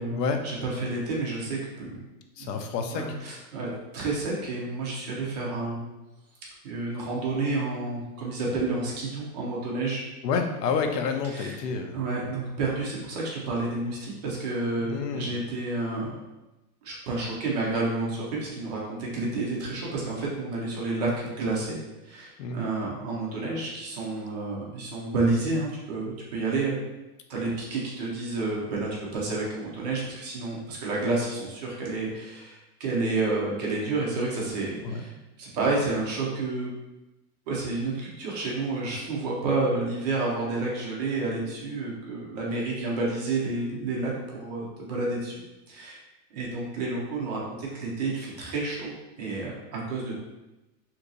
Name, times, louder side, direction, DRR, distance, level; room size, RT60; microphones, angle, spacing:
voice 1, 0.0-2.0 2.4-2.6 2.9-5.9 6.6-10.0 11.2-11.6 11.9-16.2 16.8-21.8 22.0-26.8 27.3-35.1 35.4-36.7 37.5-45.4 45.7-46.0 46.3-48.9 49.2-50.2, right 3 dB, 25° right, -4 dB, 0.5 m, -30 dB
voice 2, 2.4-3.1 10.2-11.9 14.8-15.3 22.4-22.6 34.8-35.0, left 5 dB, 75° left, 5 dB, 0.7 m, -29 dB
2.9 x 2.6 x 3.8 m, 1.0 s
supercardioid pair, 160°, 50 cm